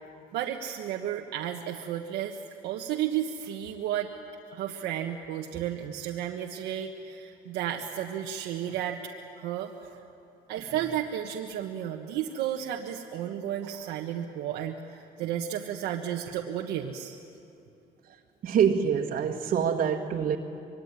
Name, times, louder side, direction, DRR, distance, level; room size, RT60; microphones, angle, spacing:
voice 1, 0.3-4.1 4.5-9.0 9.4-9.9 10.5-17.2, right 10 dB, 90° right, 2 dB, 1.5 m, -33 dB
voice 2, 18.4-20.4, right 7 dB, 55° right, 0 dB, 1.7 m, -25 dB
25.5 x 23.0 x 9.8 m, 2.8 s
cardioid pair, 110°, 17 cm